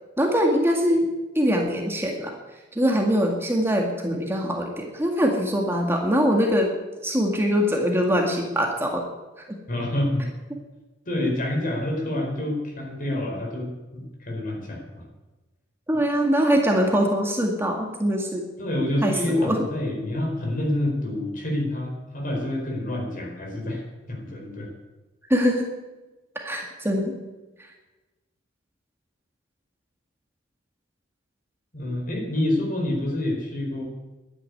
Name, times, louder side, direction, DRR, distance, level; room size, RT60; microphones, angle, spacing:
voice 1, 0.2-1.1 1.4-2.4 2.8-6.7 7.0-9.0 15.9-18.4 19.0-19.6 25.3-25.7 26.4-27.1, equal, 15° right, 1 dB, 1.9 m, -22 dB
voice 2, 9.7-10.3 11.0-15.0 18.6-24.7 31.7-33.8, left 1 dB, 45° left, 1 dB, 4.7 m, -27 dB
12.0 x 9.9 x 9.8 m, 1.1 s
head